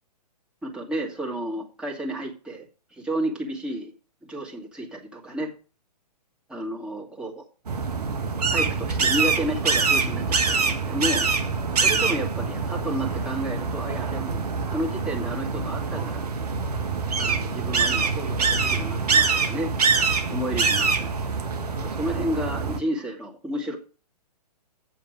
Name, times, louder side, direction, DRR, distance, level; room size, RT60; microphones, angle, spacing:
voice 1, 0.6-3.9 4.2-5.5 6.5-7.4 8.5-11.3 11.8-14.4 14.7-16.2 17.2-19.7 20.3-21.2 21.8-23.8, right 1 dB, 5° right, -2 dB, 2.2 m, -31 dB
sound 1, 7.7-22.8, right 4 dB, 65° right, 1.5 m, -25 dB
8.5 x 7.1 x 6.4 m, 0.38 s
figure-of-eight pair, 120°, 21 cm